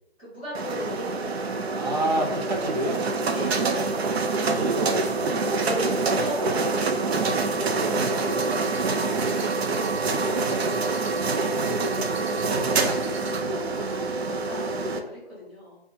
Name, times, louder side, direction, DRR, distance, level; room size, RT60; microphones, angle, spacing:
voice 1, 0.2-2.3 3.3-3.8 5.6-9.0 9.3-11.1 11.6-15.8, left 1 dB, 5° right, -10 dB, 1.4 m, -37 dB
sound 1, 0.5-15.0, right 3 dB, 75° right, 0.5 m, -26 dB
voice 2, 1.7-3.0 4.4-5.3 11.6-12.0, right 1 dB, 40° right, 2 dB, 0.7 m, -29 dB
4.3 x 2.2 x 2.7 m, 0.82 s
hypercardioid pair, 165°, 32 cm